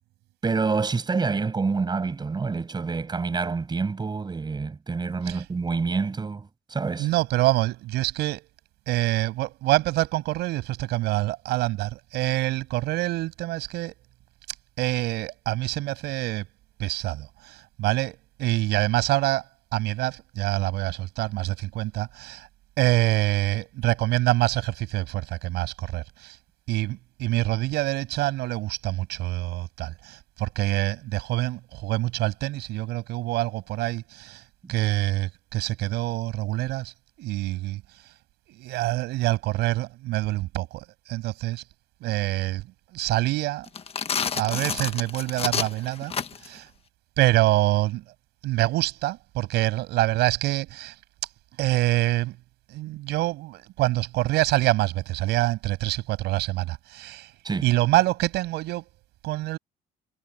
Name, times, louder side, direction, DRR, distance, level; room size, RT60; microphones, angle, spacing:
voice 1, 0.4-7.1 34.6-34.7 57.4-57.7, right 4 dB, 25° right, 6.8 m, -27 dB
voice 2, 7.0-8.5 8.9-13.9 14.8-16.5 16.8-19.4 19.7-22.5 22.8-26.4 26.7-34.4 34.7-37.8 38.5-41.6 42.0-42.7 42.9-43.7 44.3-46.1 46.4-46.7 47.2-48.0 48.4-51.0 51.6-52.4 52.7-57.3 57.6-58.9 59.2-59.6, right 17 dB, 85° right, 7.1 m, -26 dB
sound 1, 43.7-46.6, left 6 dB, 35° left, 1.4 m, -29 dB
cardioid pair, 110°, 17 cm